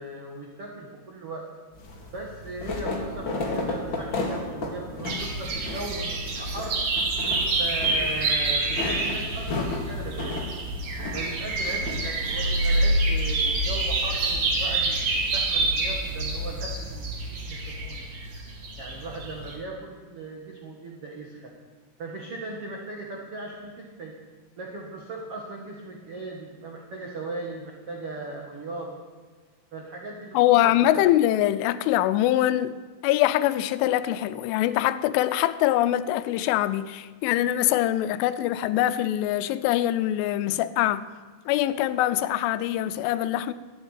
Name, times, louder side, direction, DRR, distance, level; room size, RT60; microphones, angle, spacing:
voice 1, 0.0-1.4 2.1-6.8 7.6-10.4 11.1-18.1 18.8-21.5 22.0-24.1 24.6-28.9 29.7-30.6 30.9-31.0, right 2 dB, 90° right, 1.2 m, -38 dB
sound 1, 1.7-19.6, left 2 dB, 55° left, 1.3 m, -36 dB
sound 2, 5.0-19.5, right 2 dB, 55° right, 2.6 m, -27 dB
voice 2, 30.3-32.7 33.0-41.1 41.5-43.5, left 13 dB, 90° left, 3.1 m, -23 dB
13.5 x 9.1 x 9.6 m
omnidirectional pair, 5.5 m